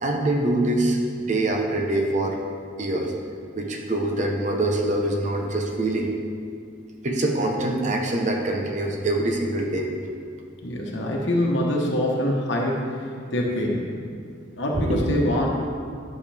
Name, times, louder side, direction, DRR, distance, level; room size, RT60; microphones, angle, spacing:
voice 1, 0.0-2.4 2.8-3.1 3.5-6.1 7.0-9.9 14.7-15.0, right 1 dB, 40° right, 1 dB, 0.9 m, -24 dB
voice 2, 10.6-13.9 14.6-15.5, left 1 dB, 75° left, -1 dB, 1.1 m, -24 dB
10.0 x 6.6 x 3.4 m, 2.3 s
head